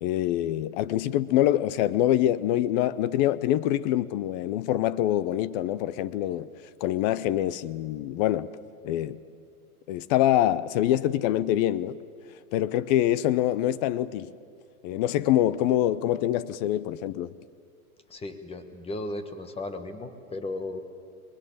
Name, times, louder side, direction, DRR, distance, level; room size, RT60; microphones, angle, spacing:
voice 1, 0.0-6.5 6.8-8.5 8.8-9.2 9.9-12.0 12.5-14.3 14.8-17.3, left 13 dB, 30° left, 0.5 m, -25 dB
voice 2, 18.1-20.8, left 2 dB, 10° left, 1.4 m, -35 dB
22.5 x 21.0 x 8.6 m
hypercardioid pair, 135°, 46 cm